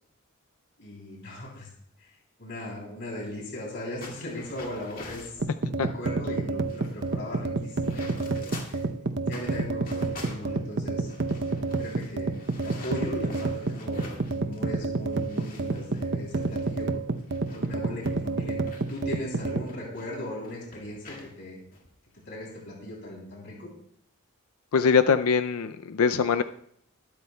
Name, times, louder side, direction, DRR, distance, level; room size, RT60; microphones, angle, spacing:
voice 1, 0.8-1.7 2.0-5.4 5.7-8.8 9.3-11.1 11.7-12.4 12.6-17.1 17.5-18.6 18.9-21.6 22.2-23.7, left 1 dB, 55° left, -3 dB, 3.3 m, -38 dB
sound 1, 4.0-5.4 6.1-6.2 6.5-8.9 9.3-14.7 15.0-20.0 20.4-21.3 21.7-21.9 22.4-22.7, left 2 dB, 40° left, 2.1 m, -47 dB
sound 2, 5.4-19.7, right 3 dB, 55° right, 0.7 m, -29 dB
voice 2, 24.7-26.4, left 6 dB, 75° left, 10 dB, 0.4 m, -22 dB
21.5 x 12.5 x 2.3 m, 0.67 s
head